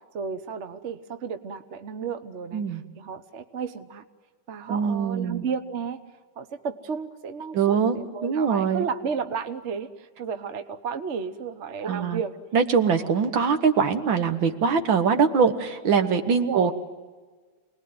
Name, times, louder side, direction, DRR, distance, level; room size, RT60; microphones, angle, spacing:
voice 1, 0.0-4.0 4.5-6.0 6.4-12.3 13.0-13.1 16.3-16.7, right 6 dB, 45° right, 8 dB, 1.1 m, -33 dB
voice 2, 4.7-5.4 7.5-8.0 8.2-8.9 11.8-12.2 12.5-16.7, right 6 dB, 65° right, 7 dB, 2.0 m, -22 dB
28.0 x 20.0 x 9.6 m, 1.5 s
omnidirectional pair, 2.3 m